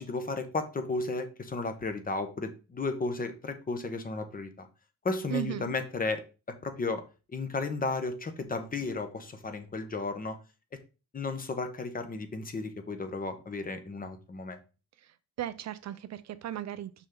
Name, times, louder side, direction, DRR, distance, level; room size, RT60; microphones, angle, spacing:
voice 1, 0.0-4.7 5.0-7.0 7.3-10.4 11.1-14.6, left 3 dB, 25° left, 1.0 m, -34 dB
voice 2, 5.3-5.8 15.0-17.1, right 12 dB, 55° right, 0.6 m, -37 dB
6.2 x 5.6 x 3.8 m
cardioid pair, 130°, 33 cm